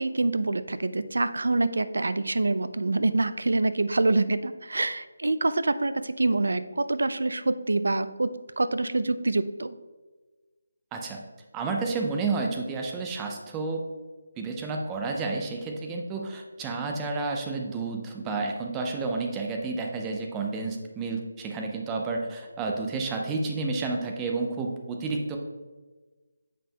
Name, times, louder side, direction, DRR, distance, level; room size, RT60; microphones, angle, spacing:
voice 1, 0.0-9.7, right 2 dB, 80° right, 12 dB, 0.4 m, -26 dB
voice 2, 10.9-11.2 11.5-13.8 14.4-25.4, right 3 dB, 10° right, 2 dB, 0.4 m, -30 dB
7.4 x 5.5 x 2.8 m, 1.3 s
figure-of-eight pair, 175°, 0 cm